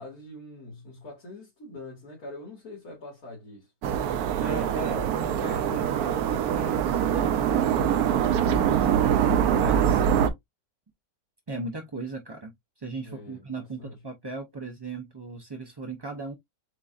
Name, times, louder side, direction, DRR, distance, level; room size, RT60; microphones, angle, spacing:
voice 1, 0.0-3.7 9.9-10.3 13.0-14.0, left 2 dB, 75° left, 2.5 m, -44 dB
sound 1, 3.8-10.3, right 9 dB, 80° right, 1.1 m, -24 dB
voice 2, 4.4-8.9 9.6-10.0 11.5-16.3, right 3 dB, 35° right, 0.3 m, -38 dB
7.5 x 2.6 x 2.4 m
omnidirectional pair, 1.6 m